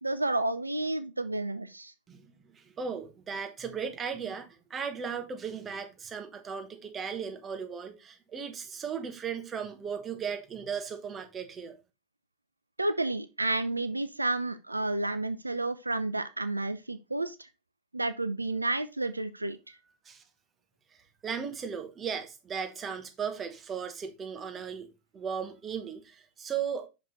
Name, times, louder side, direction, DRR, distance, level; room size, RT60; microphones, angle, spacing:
voice 1, 0.0-1.9 12.8-17.5 17.9-19.8, right 2 dB, 85° right, 0.4 m, -31 dB
voice 2, 2.1-11.8 20.0-20.2 21.2-24.9 25.1-26.9, right 6 dB, 20° right, 1.2 m, -36 dB
5.8 x 5.2 x 3.9 m
figure-of-eight pair, 90°, 0 cm